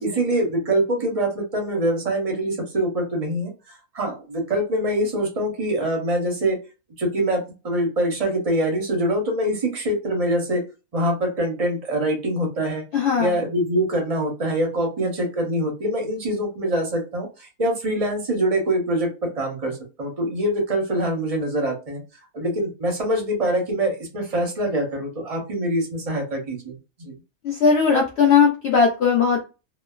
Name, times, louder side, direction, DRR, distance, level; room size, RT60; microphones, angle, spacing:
voice 1, 0.0-6.6 7.0-10.6 10.9-12.8 13.2-22.0 22.3-27.1, right 1 dB, 45° right, 1 dB, 0.4 m, -24 dB
voice 2, 12.9-13.4 27.4-29.4, left 5 dB, 75° left, -1 dB, 0.6 m, -18 dB
2.9 x 2.1 x 2.3 m, 0.30 s
omnidirectional pair, 1.7 m